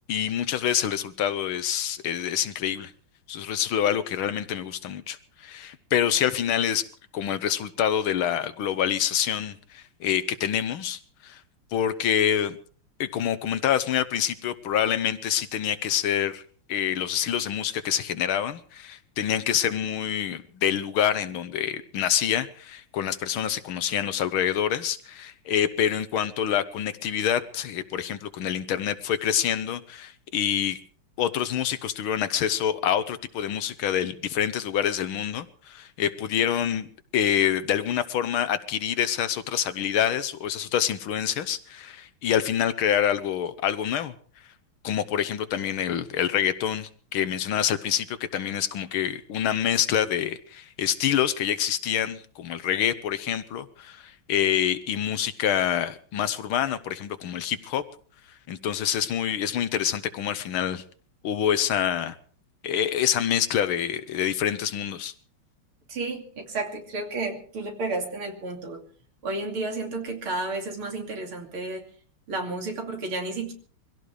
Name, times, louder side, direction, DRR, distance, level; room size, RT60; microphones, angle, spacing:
voice 1, 0.1-2.9 3.3-6.9 7.1-11.4 11.7-12.6 13.0-16.4 16.7-30.8 31.2-36.9 37.1-44.1 44.8-57.8 58.5-60.8 61.2-62.2 62.6-65.1, left 9 dB, 75° left, 1.8 m, -26 dB
voice 2, 65.9-68.9 69.2-71.9 72.3-73.5, right 2 dB, 75° right, 3.5 m, -32 dB
24.0 x 16.5 x 3.3 m
omnidirectional pair, 2.4 m